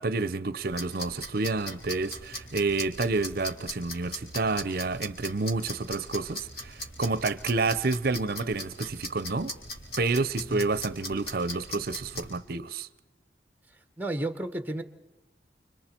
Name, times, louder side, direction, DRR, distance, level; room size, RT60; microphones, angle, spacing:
voice 1, 0.0-9.5 10.0-12.9, right 3 dB, 55° right, 0.7 m, -29 dB
sound 1, 0.6-12.4, left 1 dB, 55° left, 4.2 m, -40 dB
voice 2, 14.0-14.8, right 1 dB, 10° right, 1.2 m, -32 dB
30.0 x 26.5 x 4.5 m
head